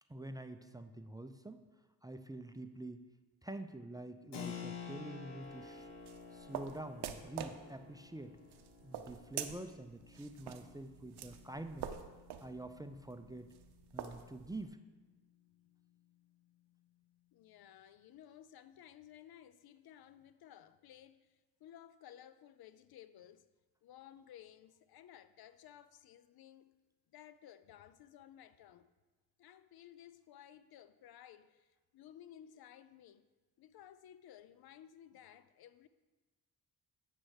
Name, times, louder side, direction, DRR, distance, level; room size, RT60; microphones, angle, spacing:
voice 1, 0.1-1.6 2.0-3.1 3.4-5.9 6.3-8.4 8.8-11.9 12.4-13.5 13.9-14.8, right 1 dB, 10° right, 0.5 m, -47 dB
Keyboard (musical), 4.3-14.7, left 6 dB, 80° left, 1.1 m, -52 dB
sound 1, 5.4-14.7, right 9 dB, 65° right, 0.7 m, -47 dB
voice 2, 17.3-23.5 23.8-26.7 27.1-28.9 29.4-33.3 33.6-35.9, left 10 dB, 60° left, 0.5 m, -57 dB
9.7 x 3.3 x 6.4 m
supercardioid pair, 50°, 42 cm